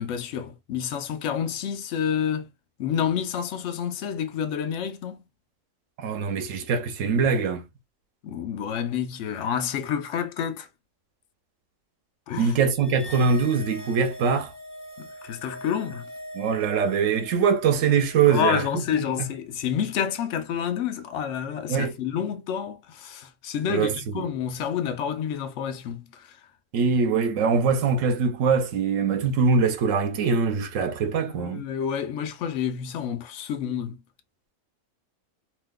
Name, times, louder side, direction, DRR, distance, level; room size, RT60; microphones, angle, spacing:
voice 1, 0.0-2.5 2.8-5.2 8.2-10.7 12.3-12.5 15.0-16.1 18.2-26.4 31.3-34.0, left 8 dB, 70° left, 0.9 m, -29 dB
voice 2, 6.0-7.6 12.4-14.5 16.4-18.6 19.2-19.3 21.7-21.9 23.7-24.3 26.7-31.7, right 5 dB, 85° right, 1.0 m, -23 dB
sound 1, 12.8-19.4, equal, 25° left, 0.9 m, -43 dB
2.8 x 2.2 x 3.5 m
omnidirectional pair, 1.3 m